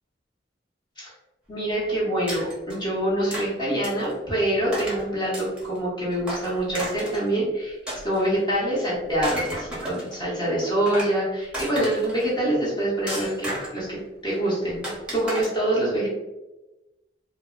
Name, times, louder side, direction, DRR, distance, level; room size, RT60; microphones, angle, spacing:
voice 1, 1.5-7.8 8.0-16.1, right 1 dB, 25° left, -7 dB, 0.8 m, -25 dB
sound 1, 2.3-2.8 3.3-3.5 3.8-4.1 4.7-5.0 5.3-5.8 6.2-7.3 7.9-8.6 9.0-10.2 10.6-11.1 11.5-12.2 13.1-13.8 14.8-15.5, right 1 dB, 5° right, 0.8 m, -32 dB
2.1 x 2.0 x 3.6 m, 1.0 s
head